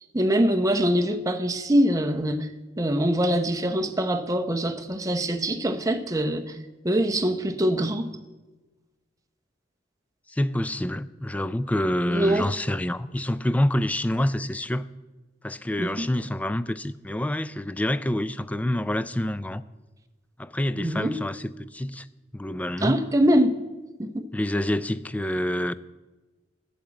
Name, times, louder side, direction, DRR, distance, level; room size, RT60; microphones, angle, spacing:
voice 1, 0.1-2.5 2.8-6.6 6.8-8.1 12.1-12.5 15.8-16.1 20.8-21.2 22.8-23.5 24.0-24.2, equal, 20° right, 0.8 m, -23 dB
voice 2, 10.3-14.9 15.4-19.6 20.4-22.1 22.3-23.0 24.3-25.7, left 1 dB, 10° left, 0.3 m, -27 dB
10.5 x 7.1 x 8.8 m
head